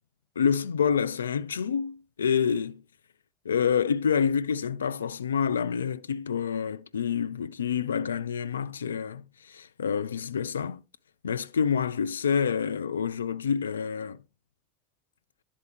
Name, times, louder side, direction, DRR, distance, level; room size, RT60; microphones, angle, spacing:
voice 1, 0.4-2.8 3.5-10.8 11.2-14.2, left 7 dB, 80° left, 0.3 m, -27 dB
11.0 x 4.3 x 2.9 m
hypercardioid pair, 80°, 0 cm